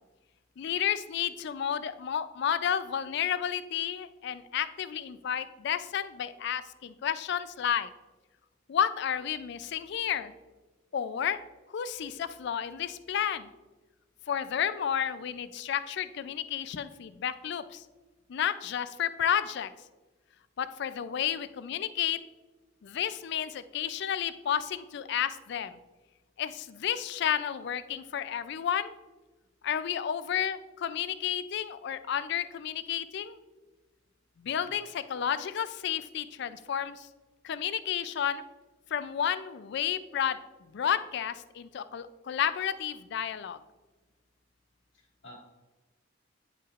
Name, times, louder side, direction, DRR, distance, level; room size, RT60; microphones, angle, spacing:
voice 1, 0.6-7.9 8.7-10.3 10.9-11.4 11.7-13.5 14.3-17.8 18.3-19.7 20.6-22.2 22.8-25.8 26.4-29.0 29.6-33.4 34.4-37.1 37.4-38.4 38.9-40.4 40.7-43.6, left 9 dB, 60° left, 13 dB, 0.3 m, -31 dB
voice 2, 34.4-34.8 44.9-45.4, left 1 dB, 75° left, -2 dB, 1.8 m, -52 dB
9.5 x 5.6 x 2.4 m, 1.2 s
head